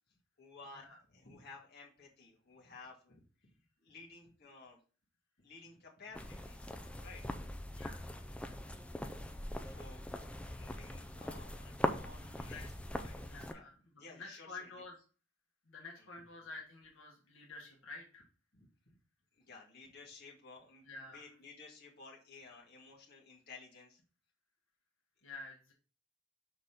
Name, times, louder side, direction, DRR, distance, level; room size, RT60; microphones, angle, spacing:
voice 1, 0.4-4.8 5.4-6.7 7.0-7.3 9.6-10.0 10.5-13.6 14.0-14.8 16.0-16.1 18.5-19.0 19.3-20.9 21.1-24.0, left 4 dB, 55° left, -3 dB, 1.9 m, -55 dB
sound 1, 6.1-13.5, left 1 dB, 5° left, 0.4 m, -41 dB
voice 2, 7.7-8.1 11.9-12.7 13.2-13.8 14.1-15.0 15.6-18.2 20.8-21.3 25.2-25.7, left 3 dB, 75° left, -1 dB, 1.7 m, -50 dB
6.2 x 4.0 x 5.2 m, 0.38 s
head